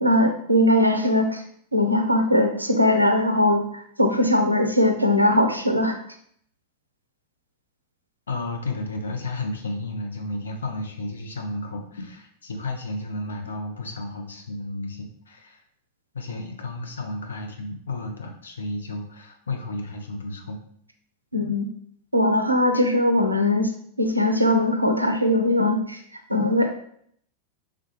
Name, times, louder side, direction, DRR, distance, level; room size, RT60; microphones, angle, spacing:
voice 1, 0.0-1.4 1.7-6.0 21.3-21.7 22.1-23.7 24.0-26.0 26.3-26.7, left 1 dB, 85° right, 4 dB, 0.4 m, -20 dB
voice 2, 8.3-15.6 16.1-20.6, left 2 dB, 70° left, 3 dB, 0.6 m, -32 dB
3.4 x 2.3 x 3.1 m, 0.64 s
figure-of-eight pair, 90°, 0 cm